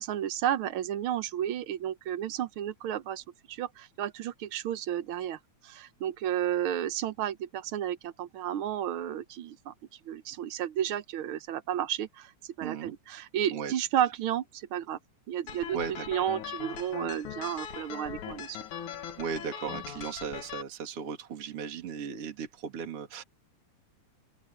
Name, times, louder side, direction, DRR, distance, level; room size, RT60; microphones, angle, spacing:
voice 1, 0.0-5.4 5.6-9.7 10.1-12.3 12.6-15.0 15.3-15.8 16.1-18.6, right 10 dB, 75° right, 1.2 m, -32 dB
voice 2, 12.6-12.9 13.5-13.7 15.7-16.2 19.2-23.2, right 6 dB, 50° right, 3.2 m, -37 dB
sound 1, 15.5-20.6, left 8 dB, 75° left, 3.2 m, -40 dB
open air
omnidirectional pair, 3.5 m